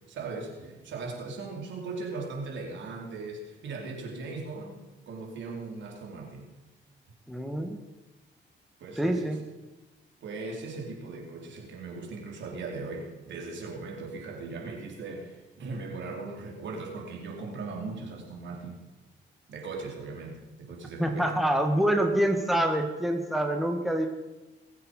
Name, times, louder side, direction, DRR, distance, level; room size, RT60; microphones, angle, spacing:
voice 1, 0.1-4.8 5.1-6.5 8.8-9.4 10.2-18.8 19.5-21.3, right 3 dB, 70° right, 0 dB, 4.0 m, -38 dB
voice 2, 7.3-7.8 9.0-9.4 21.0-24.1, right 1 dB, ahead, 3 dB, 1.9 m, -26 dB
22.0 x 8.2 x 5.6 m, 1.1 s
cardioid pair, 90°, 20 cm